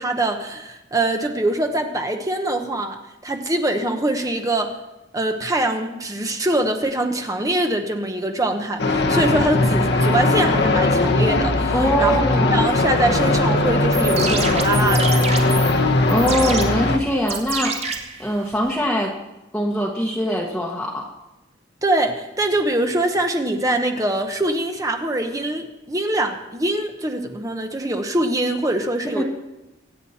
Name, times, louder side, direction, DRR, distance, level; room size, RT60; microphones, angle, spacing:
voice 1, 0.0-4.8 5.1-12.2 12.5-15.6 21.8-29.2, right 1 dB, 15° right, 5 dB, 0.9 m, -23 dB
sound 1, 8.8-17.0, left 2 dB, 55° left, 1.2 m, -19 dB
voice 2, 11.7-12.6 16.1-17.7 18.2-19.1 19.5-21.1 29.0-29.2, equal, 5° left, -4 dB, 1.2 m, -22 dB
sound 2, 13.8-18.8, right 5 dB, 35° right, 1.7 m, -29 dB
25.0 x 9.0 x 4.2 m, 1.0 s
head